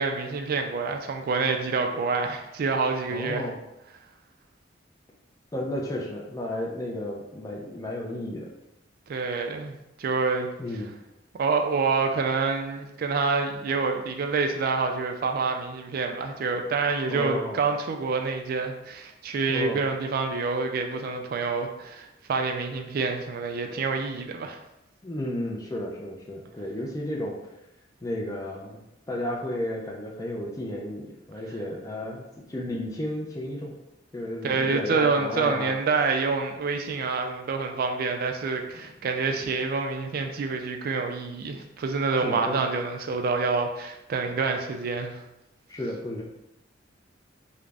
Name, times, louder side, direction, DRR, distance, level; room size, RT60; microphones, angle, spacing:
voice 1, 0.0-3.5 9.1-10.5 11.4-24.6 34.4-45.2, right 4 dB, 50° right, 4 dB, 0.3 m, -27 dB
voice 2, 3.1-3.6 5.5-8.5 10.6-11.0 17.1-17.6 19.5-19.8 25.0-27.4 28.0-28.8 29.1-33.7 34.1-35.7 42.2-42.6 45.7-46.2, left 1 dB, 20° left, -1 dB, 0.4 m, -33 dB
2.4 x 2.0 x 3.3 m, 0.90 s
head